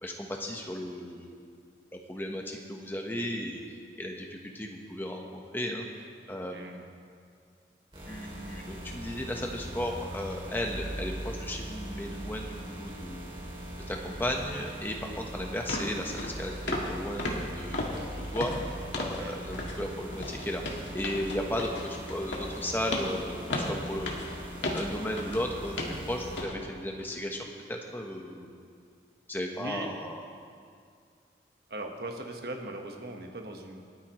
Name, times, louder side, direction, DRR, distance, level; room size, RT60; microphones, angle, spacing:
voice 1, 0.0-1.3 1.9-3.6 4.0-5.9 6.3-6.9 8.1-13.3 13.9-16.5 16.9-18.5 18.9-24.2 24.7-28.6 29.3-30.2, equal, 10° left, 1 dB, 1.1 m, -35 dB
voice 2, 6.5-6.9 19.2-19.3 29.6-29.9 31.7-33.8, right 1 dB, 60° right, 2 dB, 1.3 m, -39 dB
sound 1, 7.9-26.4, right 1 dB, 30° right, 2.8 m, -41 dB
sound 2, 15.1-15.2 15.7-15.9 16.2-16.4 16.7-16.9 17.2-19.2 19.5-19.8 20.1-25.4 25.8-26.0 26.4-26.6 27.0-27.1, left 2 dB, 85° left, 1.8 m, -35 dB
27.0 x 9.1 x 3.1 m, 2.2 s
head